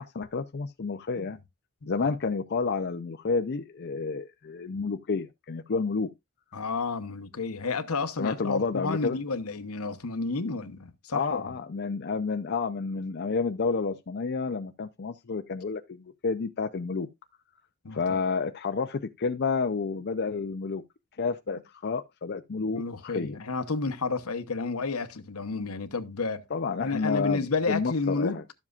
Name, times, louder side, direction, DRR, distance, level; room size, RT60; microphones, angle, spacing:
voice 1, 0.0-1.4 1.9-6.1 8.2-9.2 11.1-17.1 17.9-20.8 21.2-23.4 26.5-28.4, left 4 dB, 50° left, 0.5 m, -30 dB
voice 2, 6.5-11.5 17.8-18.2 22.7-26.4 26.8-28.4, left 4 dB, 80° left, 1.0 m, -31 dB
12.0 x 7.4 x 2.4 m
head